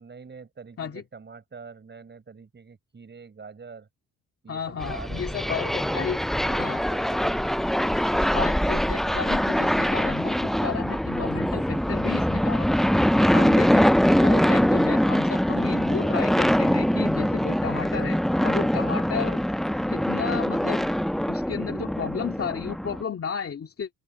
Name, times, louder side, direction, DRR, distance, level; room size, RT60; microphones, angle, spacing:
voice 1, 0.0-3.9 4.4-6.1 6.4-7.5, right 5 dB, 35° right, 7.6 m, -45 dB
voice 2, 4.5-6.2 6.4-6.8 8.3-12.7 13.3-13.9 14.1-19.4 19.9-20.9 21.3-23.9, left 7 dB, 45° left, 2.4 m, -33 dB
sound 1, 4.8-23.0, equal, ahead, 0.3 m, -23 dB
open air
cardioid pair, 105°, 32 cm